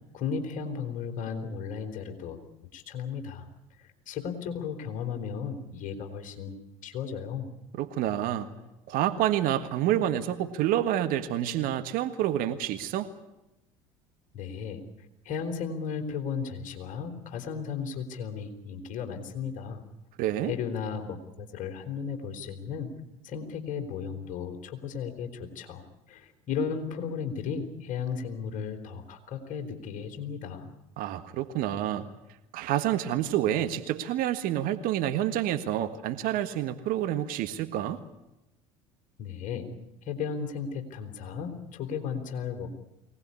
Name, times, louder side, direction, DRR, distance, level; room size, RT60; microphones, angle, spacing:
voice 1, 0.1-2.4 2.7-3.5 3.8-7.5 14.3-14.8 15.2-19.8 20.5-22.9 23.2-30.7 39.2-39.7 40.0-42.7, left 6 dB, 50° left, 5 dB, 4.2 m, -35 dB
voice 2, 7.8-8.5 8.9-13.1 20.2-20.5 31.0-32.1 32.5-38.0, right 12 dB, 60° right, 10 dB, 1.7 m, -28 dB
23.5 x 18.5 x 9.8 m, 0.92 s
hypercardioid pair, 70°, 17 cm